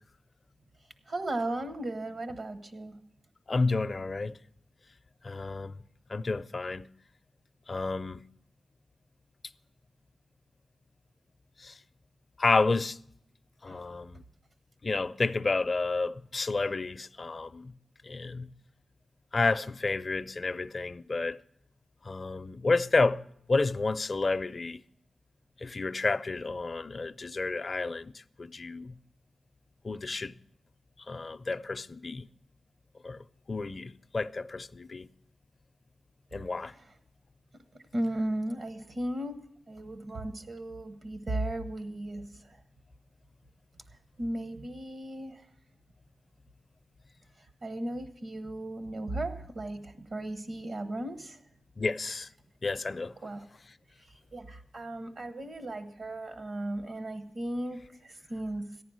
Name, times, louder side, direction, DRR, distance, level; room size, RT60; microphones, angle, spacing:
voice 1, 1.1-3.0 13.7-13.9 36.7-36.9 37.9-39.4 39.7-42.6 44.2-45.5 47.4-51.4 53.2-53.4 54.0-58.8, right 1 dB, 60° right, 1.0 m, -36 dB
voice 2, 3.5-4.4 5.2-5.8 6.1-6.9 7.7-8.2 11.6-11.8 12.4-13.0 13.6-14.2 14.8-17.7 18.0-18.5 19.3-21.4 22.0-23.2 23.5-24.8 25.6-29.0 29.8-30.4 31.1-32.3 33.0-35.1 36.3-36.7 51.8-52.3 52.6-53.1, left 3 dB, 45° left, 0.4 m, -30 dB
14.0 x 11.0 x 6.2 m
cardioid pair, 70°, 0 cm